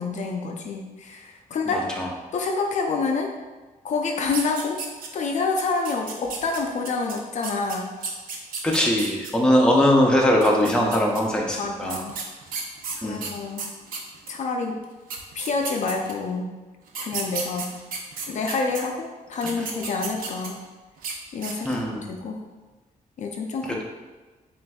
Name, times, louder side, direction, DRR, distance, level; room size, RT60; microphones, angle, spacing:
voice 1, 0.0-1.9 2.3-3.3 3.8-4.8 5.1-8.0 11.6-12.2 13.0-13.7 14.3-14.8 15.4-16.5 17.0-17.7 18.3-20.6 21.3-22.4 23.2-23.8, left 4 dB, 55° left, 2 dB, 0.5 m, -28 dB
voice 2, 1.7-2.1 8.6-12.0 13.0-13.3 21.6-22.1, left 1 dB, 5° left, -1 dB, 0.6 m, -21 dB
sound 1, 4.2-5.3 5.6-9.3 10.3-11.2 11.9-14.4 14.8-14.9 15.1-16.3 16.9-18.8 19.3-20.7 21.0-21.1 21.4-21.8, right 5 dB, 80° right, 0.6 m, -34 dB
7.4 x 2.6 x 2.3 m, 1.2 s
wide cardioid pair, 145°, 14 cm